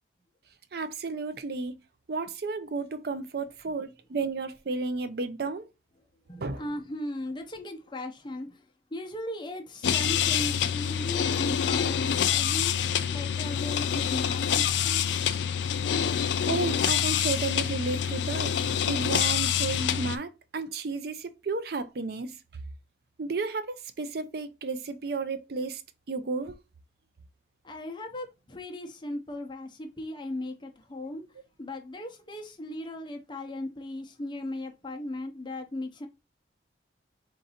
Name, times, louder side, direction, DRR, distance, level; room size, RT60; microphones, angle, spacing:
voice 1, 0.7-1.7 2.1-5.7 6.4-6.6 16.5-18.5 18.9-22.4 23.2-25.8 26.1-26.5, right 3 dB, 55° right, 0.5 m, -32 dB
voice 2, 6.3-12.8 13.1-15.2 27.6-31.2 31.6-36.1, left 1 dB, 25° left, 0.7 m, -38 dB
sound 1, 9.8-20.2, left 8 dB, 80° left, 0.4 m, -26 dB
3.9 x 2.6 x 4.1 m
head